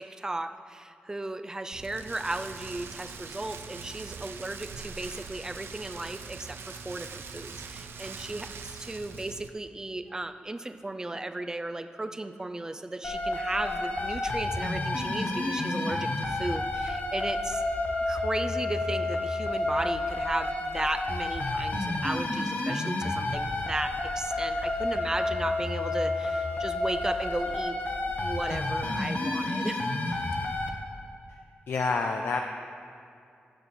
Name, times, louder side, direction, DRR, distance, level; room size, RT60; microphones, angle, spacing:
voice 1, 0.0-17.6 18.1-27.8 28.2-29.9, right 2 dB, 15° right, 9 dB, 0.4 m, -35 dB
Rain, 1.7-9.5, right 5 dB, 90° right, 0.6 m, -42 dB
sound 1, 13.0-30.7, left 2 dB, 50° left, 1.1 m, -30 dB
voice 2, 31.7-32.4, left 4 dB, 90° left, 3 dB, 0.5 m, -28 dB
16.5 x 7.1 x 4.2 m, 2.5 s
wide cardioid pair, 135°, 4 cm